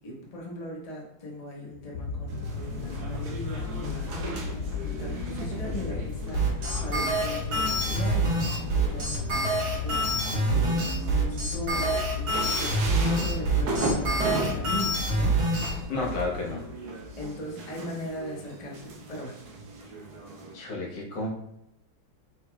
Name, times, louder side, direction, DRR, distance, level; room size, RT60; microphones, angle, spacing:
voice 1, 0.0-4.2 4.5-9.3 9.8-15.3 17.2-19.4, left 1 dB, 40° left, -2 dB, 0.5 m, -39 dB
sound 1, 1.7-17.3 18.1-18.2, left 4 dB, 85° left, 0.7 m, -34 dB
sound 2, 2.3-20.5, right 3 dB, 60° right, 1.1 m, -38 dB
sound 3, 6.3-15.7, right 2 dB, 75° right, 2.3 m, -26 dB
voice 2, 15.9-16.6 20.5-21.3, left 2 dB, 60° left, -2 dB, 1.7 m, -31 dB
4.8 x 4.3 x 2.3 m, 0.82 s
omnidirectional pair, 2.2 m